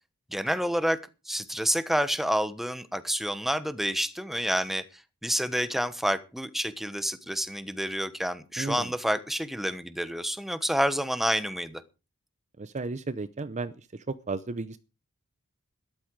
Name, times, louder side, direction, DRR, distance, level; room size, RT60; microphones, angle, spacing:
voice 1, 0.3-1.0 1.3-4.8 5.2-11.8, equal, ahead, 12 dB, 1.1 m, -28 dB
voice 2, 8.6-8.9 12.6-14.8, right 3 dB, 30° right, 14 dB, 0.7 m, -34 dB
13.0 x 12.5 x 4.7 m, 0.31 s
head